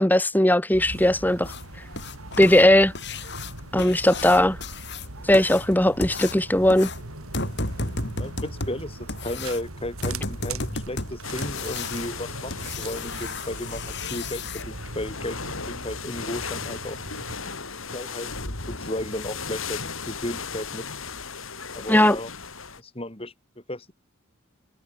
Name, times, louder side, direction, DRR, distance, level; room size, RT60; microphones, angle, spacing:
voice 1, 0.0-1.5 2.4-2.9 3.7-4.6 5.2-6.9 21.9-22.2, left 1 dB, 10° left, 1.2 m, -18 dB
sound 1, 0.7-17.4, right 2 dB, 90° right, 3.2 m, -40 dB
sound 2, 1.4-14.6 16.9-17.0 17.5-17.6 18.0-18.1 18.6-18.7 19.2-19.3 19.7-19.8 20.3-20.4, left 3 dB, 55° left, 6.1 m, -34 dB
voice 2, 8.2-15.4 15.7-17.0 17.9-20.8 21.7-22.3 22.8-23.3 23.7-23.9, left 1 dB, 25° left, 3.1 m, -34 dB
sound 3, 11.2-22.8, left 5 dB, 75° left, 4.9 m, -36 dB
head